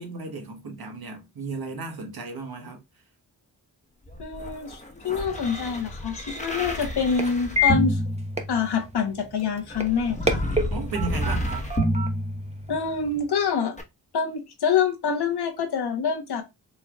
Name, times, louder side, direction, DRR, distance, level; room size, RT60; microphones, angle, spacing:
voice 1, 0.0-2.8 10.7-11.7, right 3 dB, 60° right, 1.4 m, -34 dB
sound 1, 4.1-9.0 9.7-13.0 13.8-13.9, equal, 15° left, 1.1 m, -29 dB
voice 2, 4.2-8.0 8.5-10.4 12.7-13.8 14.1-16.4, left 6 dB, 70° left, 1.2 m, -26 dB
sound 2, 5.6-13.3, left 2 dB, 15° right, 1.0 m, -32 dB
4.6 x 3.0 x 2.3 m
cardioid pair, 45°, 41 cm